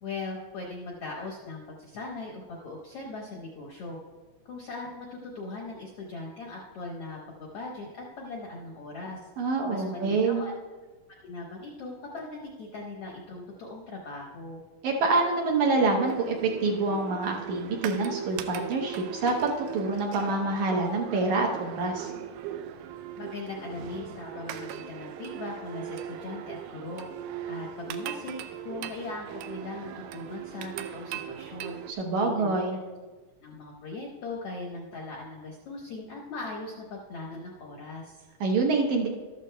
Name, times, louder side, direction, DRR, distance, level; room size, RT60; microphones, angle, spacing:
voice 1, 0.0-4.0 4.5-9.3 9.7-10.5 11.2-14.6 23.2-27.1 27.5-31.8 32.2-32.7 33.4-38.2, left 3 dB, 70° left, -2 dB, 1.5 m, -39 dB
voice 2, 9.4-10.4 14.8-22.1 32.0-32.8 38.4-39.1, right 3 dB, 70° right, 0 dB, 2.1 m, -26 dB
sound 1, 16.0-31.9, right 10 dB, 90° right, 2.3 m, -39 dB
13.5 x 13.0 x 2.2 m, 1.3 s
omnidirectional pair, 4.0 m